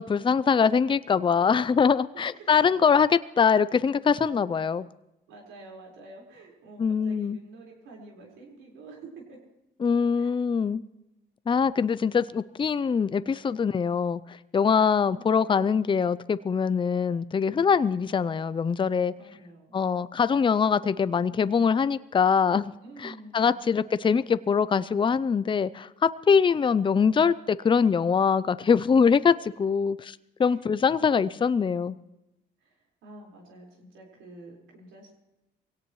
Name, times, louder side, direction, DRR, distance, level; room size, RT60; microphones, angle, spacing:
voice 1, 0.0-4.9 6.8-7.4 9.8-10.8 11.5-19.1 19.7-22.7 23.0-32.0, left 6 dB, 25° left, 16 dB, 0.5 m, -23 dB
voice 2, 2.1-2.6 5.3-9.4 10.1-10.3 14.8-15.2 19.1-19.7 22.8-23.7 30.4-30.6 32.6-35.1, right 2 dB, 90° right, -1 dB, 4.7 m, -48 dB
23.0 x 17.5 x 3.1 m, 0.92 s
cardioid pair, 90°, 20 cm